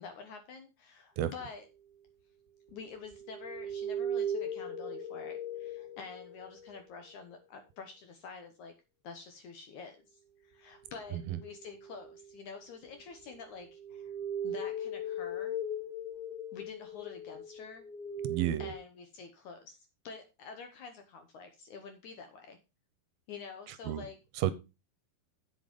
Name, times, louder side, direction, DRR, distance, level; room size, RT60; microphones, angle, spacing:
voice 1, 0.0-1.7 2.7-8.7 9.0-14.1 14.4-15.6 16.5-17.9 18.6-19.8 20.0-22.6 23.3-24.2, left 5 dB, 70° left, 6 dB, 2.0 m, -47 dB
sound 1, 2.7-6.8 10.9-12.4 13.2-18.7, right 1 dB, 15° left, 1.3 m, -39 dB
voice 2, 18.3-18.7 23.9-24.0 24.4-24.5, right 12 dB, 75° right, 14 dB, 2.4 m, -31 dB
8.0 x 7.9 x 5.1 m, 0.28 s
omnidirectional pair, 4.6 m